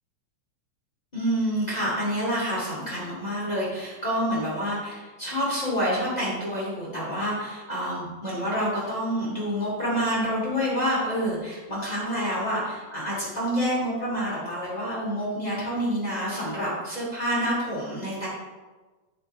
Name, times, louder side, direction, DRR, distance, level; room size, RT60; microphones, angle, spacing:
voice 1, 1.1-18.3, equal, 25° left, -8 dB, 0.8 m, -28 dB
10.0 x 6.5 x 3.4 m, 1.3 s
omnidirectional pair, 5.9 m